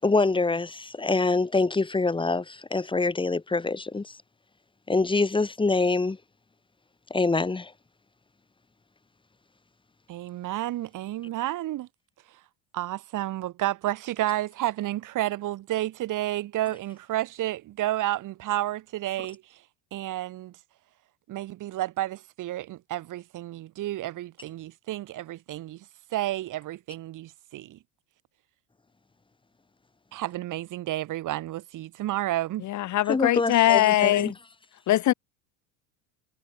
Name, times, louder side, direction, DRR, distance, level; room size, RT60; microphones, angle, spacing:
voice 1, 0.0-4.2 4.9-6.2 7.1-7.7 33.1-34.3, left 3 dB, 10° left, 6.0 m, -25 dB
voice 2, 10.1-11.9 12.7-19.4 19.9-20.6 21.3-25.8 26.1-27.8 30.1-32.7, right 15 dB, 50° right, 6.7 m, -31 dB
voice 3, 32.6-34.3 34.9-35.1, left 14 dB, 45° left, 2.7 m, -21 dB
cardioid pair, 130°, 40 cm